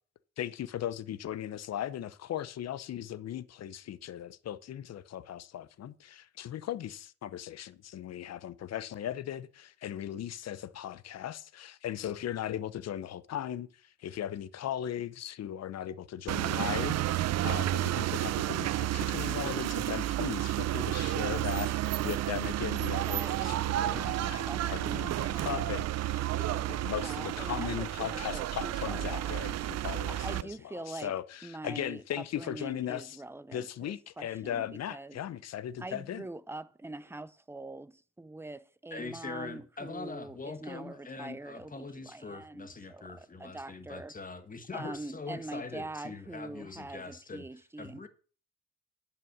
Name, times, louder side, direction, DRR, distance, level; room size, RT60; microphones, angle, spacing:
voice 1, 0.4-21.7 22.0-26.2 26.7-30.5 30.9-33.2 33.5-36.2, left 11 dB, 60° left, 0.8 m, -38 dB
sound 1, 16.3-30.4, right 13 dB, 60° right, 0.5 m, -31 dB
voice 2, 23.0-25.8 26.1-26.7 27.0-29.3 30.0-31.1 31.4-35.2 35.8-44.1 44.7-48.0, right 2 dB, 10° right, 0.6 m, -44 dB
voice 3, 38.9-48.1, left 3 dB, 25° left, 1.6 m, -43 dB
11.0 x 5.8 x 6.2 m
cardioid pair, 90°, 30 cm